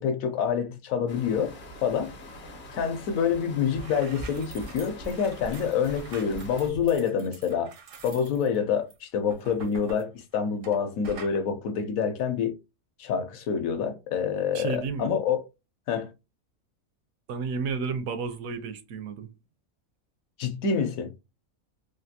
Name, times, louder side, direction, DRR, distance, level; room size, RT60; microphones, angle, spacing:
voice 1, 0.0-1.5 1.8-2.1 2.7-7.7 8.0-12.5 13.0-15.4 15.9-16.1 20.4-21.1, left 7 dB, 75° left, 1.1 m, -27 dB
sound 1, 1.1-6.7, left 2 dB, 45° left, 0.7 m, -45 dB
sound 2, 3.3-3.4 3.6-10.8 11.0-11.4, right 3 dB, 55° right, 0.6 m, -44 dB
voice 2, 14.5-15.1 17.3-19.3, right 5 dB, 75° right, 1.0 m, -32 dB
3.3 x 2.5 x 2.7 m
omnidirectional pair, 1.5 m